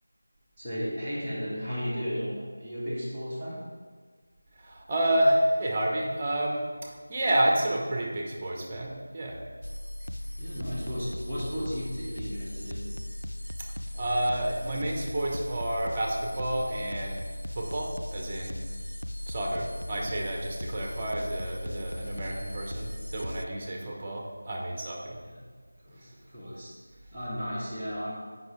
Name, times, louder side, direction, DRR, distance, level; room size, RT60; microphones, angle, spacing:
voice 1, 0.6-3.6 10.4-12.9 23.7-23.8 25.2-25.4 25.8-26.7 27.1-28.1, equal, ahead, -18 dB, 1.4 m, -34 dB
voice 2, 4.6-9.4 13.9-17.2 17.5-18.6 19.3-25.2, right 1 dB, 25° right, 0 dB, 0.9 m, -29 dB
sound 1, 9.6-23.4, left 1 dB, 85° left, 0.3 m, -37 dB
7.8 x 5.2 x 3.2 m, 1.5 s
figure-of-eight pair, 170°, 0 cm